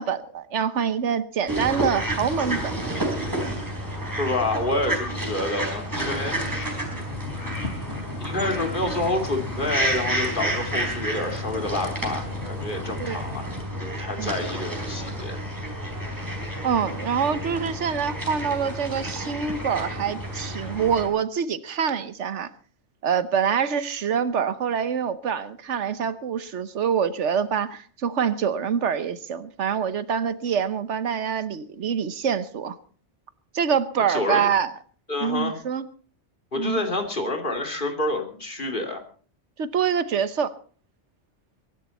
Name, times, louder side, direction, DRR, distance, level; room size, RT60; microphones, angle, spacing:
voice 1, 0.0-2.7 13.0-13.2 14.2-14.4 16.6-22.5 23.0-32.8 33.5-34.7 35.2-35.8 36.5-36.8 39.6-40.5, right 7 dB, 90° right, 14 dB, 1.3 m, -25 dB
sound 1, 1.5-21.1, right 1 dB, 15° right, 4.2 m, -30 dB
voice 2, 4.2-6.4 8.2-13.5 13.8-15.4 34.1-34.5 35.1-35.6 36.5-39.0, left 2 dB, 45° left, 4 dB, 2.8 m, -28 dB
sound 2, 5.9-13.6, left 3 dB, 70° left, 2.3 m, -38 dB
23.0 x 11.5 x 4.2 m, 0.43 s
omnidirectional pair, 1.2 m